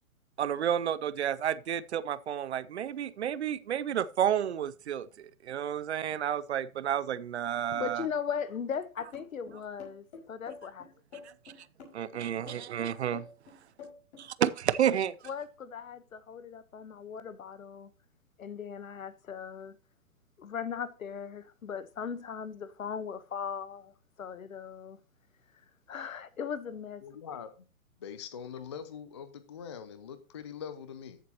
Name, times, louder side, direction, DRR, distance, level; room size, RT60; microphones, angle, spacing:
voice 1, 0.4-8.1 9.0-9.1 9.5-9.6 11.9-13.3 14.2-15.1, right 10 dB, 50° right, 0.7 m, -31 dB
voice 2, 7.7-10.9 15.2-17.9 18.4-19.8 20.4-25.0 25.9-27.0, left 7 dB, 70° left, 1.2 m, -38 dB
sound 1, 9.1-14.3, left 5 dB, 45° left, 5.4 m, -48 dB
voice 3, 27.0-27.5 28.0-31.2, left 7 dB, 20° left, 0.4 m, -43 dB
14.0 x 7.5 x 2.9 m
figure-of-eight pair, 125°, 43 cm